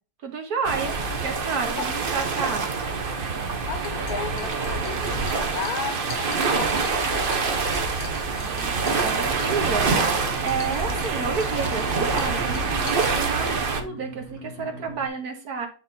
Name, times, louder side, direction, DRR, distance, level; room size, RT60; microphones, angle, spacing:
voice 1, 0.2-1.0 1.2-2.8 8.3-15.7, right 5 dB, 65° right, 1.7 m, -31 dB
sound 1, 0.6-13.8, right 4 dB, 45° right, 0.8 m, -26 dB
voice 2, 3.7-7.3, left 6 dB, 65° left, 1.3 m, -34 dB
sound 2, 3.8-13.7, left 6 dB, 90° left, 1.9 m, -46 dB
sound 3, 8.7-15.1, equal, 15° right, 1.5 m, -41 dB
9.3 x 3.7 x 4.2 m
omnidirectional pair, 1.8 m